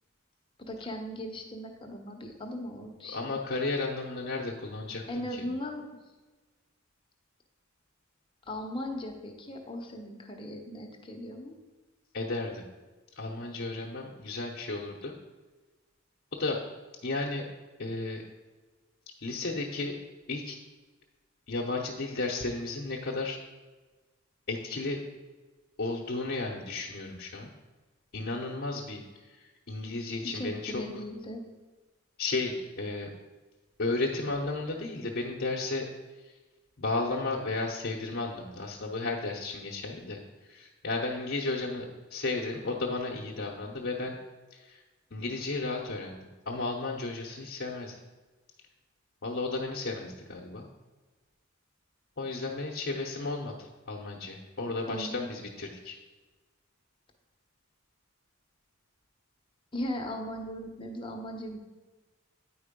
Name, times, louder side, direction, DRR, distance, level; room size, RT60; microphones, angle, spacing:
voice 1, 0.6-3.4 5.1-5.8 8.5-11.6 30.3-31.5 54.9-55.2 59.7-61.6, left 1 dB, 25° left, 2 dB, 1.0 m, -38 dB
voice 2, 3.1-5.5 12.1-12.6 13.2-15.1 16.3-16.6 17.0-17.5 17.8-18.2 19.2-19.9 20.3-20.6 21.5-23.4 24.5-25.0 25.8-27.5 28.1-30.8 32.2-33.1 33.8-35.9 36.2-36.3 36.8-44.1 44.5-44.8 45.1-47.9 49.2-50.7 52.2-56.0, left 3 dB, 55° left, -2 dB, 0.9 m, -33 dB
9.3 x 4.6 x 5.2 m, 1.2 s
head